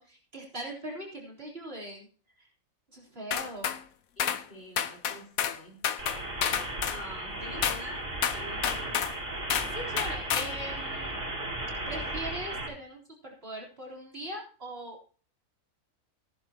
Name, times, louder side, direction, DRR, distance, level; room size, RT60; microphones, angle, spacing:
voice 1, 0.0-2.1 2.4-2.5 2.9-3.7 9.7-11.1 11.9-15.2, right 1 dB, 45° right, -2 dB, 4.1 m, -40 dB
sound 1, 3.3-3.8 4.2-4.4 4.8-5.6 5.8-7.0 7.6-7.8 8.2-9.1 9.5-9.7 10.0-10.5, left 9 dB, 90° left, 1.3 m, -29 dB
voice 2, 4.2-5.9 6.9-8.1 8.3-9.0, equal, 50° left, -2 dB, 5.2 m, -45 dB
sound 2, 6.0-12.7, right 1 dB, 60° right, 6.4 m, -36 dB
16.0 x 11.0 x 2.9 m, 0.40 s
omnidirectional pair, 1.4 m